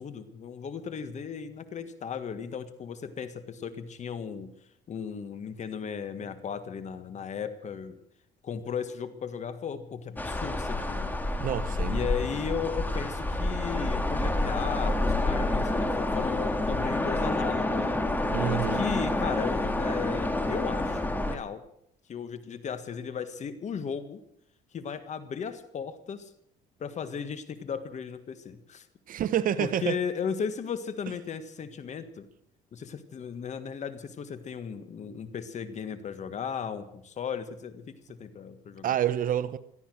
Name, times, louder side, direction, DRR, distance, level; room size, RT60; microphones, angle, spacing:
voice 1, 0.0-4.5 4.9-8.0 8.4-11.1 11.9-18.0 18.5-21.6 22.1-24.2 24.7-26.3 26.8-28.9 29.6-32.3 32.7-38.9, left 7 dB, 45° left, 1.7 m, -36 dB
sound 1, 10.2-21.4, left 2 dB, 10° left, 2.0 m, -28 dB
voice 2, 11.4-12.0 18.3-18.8 29.1-30.0 38.8-39.6, right 10 dB, 55° right, 0.9 m, -28 dB
17.5 x 13.0 x 6.4 m
cardioid pair, 110°, 17 cm